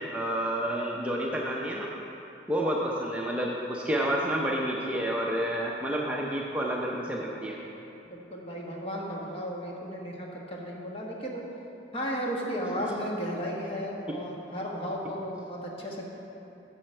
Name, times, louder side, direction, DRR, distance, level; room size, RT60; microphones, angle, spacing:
voice 1, 0.0-1.9 2.5-7.6, right 1 dB, 5° right, -3 dB, 0.6 m, -29 dB
voice 2, 8.1-11.4 11.9-16.0, equal, 30° left, -2 dB, 1.3 m, -34 dB
11.5 x 6.9 x 4.4 m, 2.9 s
head